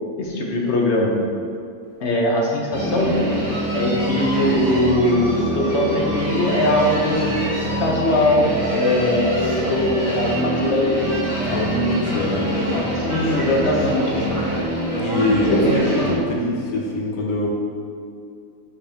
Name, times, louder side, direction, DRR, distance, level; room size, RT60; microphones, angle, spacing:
voice 1, 0.2-1.1 2.0-3.1 3.7-7.3 7.8-11.2 12.5-14.3 15.1-15.9, left 1 dB, 55° left, -1 dB, 1.1 m, -21 dB
sound 1, 2.7-16.1, right 1 dB, 25° left, 1.6 m, -25 dB
voice 2, 11.4-12.5 14.9-17.5, left 1 dB, 85° left, -1 dB, 1.4 m, -23 dB
5.2 x 4.2 x 5.0 m, 2.4 s
omnidirectional pair, 1.5 m